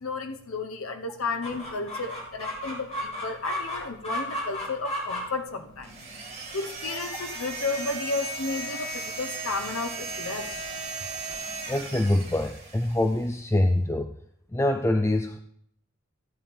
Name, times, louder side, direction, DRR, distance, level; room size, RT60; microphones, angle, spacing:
voice 1, 0.0-5.9 6.5-10.5, left 3 dB, 85° left, 6 dB, 0.9 m, -32 dB
Chicken rooster, 1.4-12.5, left 1 dB, 30° left, 3.5 m, -38 dB
sound 1, 5.8-13.2, right 3 dB, 35° right, 1.8 m, -36 dB
voice 2, 11.7-14.1 14.5-15.4, left 1 dB, 15° left, 7 dB, 0.4 m, -24 dB
14.5 x 9.0 x 3.5 m, 0.71 s
head